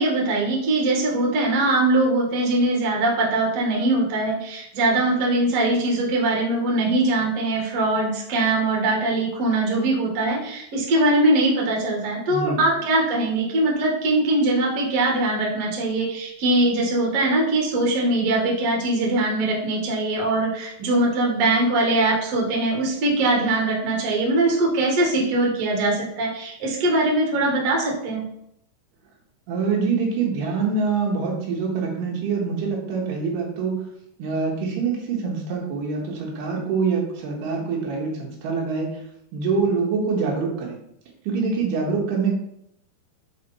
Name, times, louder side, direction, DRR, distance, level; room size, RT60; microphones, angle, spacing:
voice 1, 0.0-28.2, right 2 dB, 50° right, -2 dB, 2.4 m, -22 dB
voice 2, 12.3-12.6 29.5-33.9 34.2-39.0 39.3-40.8 41.2-42.3, right 5 dB, 85° right, -1 dB, 3.4 m, -25 dB
6.7 x 5.0 x 4.2 m, 0.74 s
omnidirectional pair, 4.6 m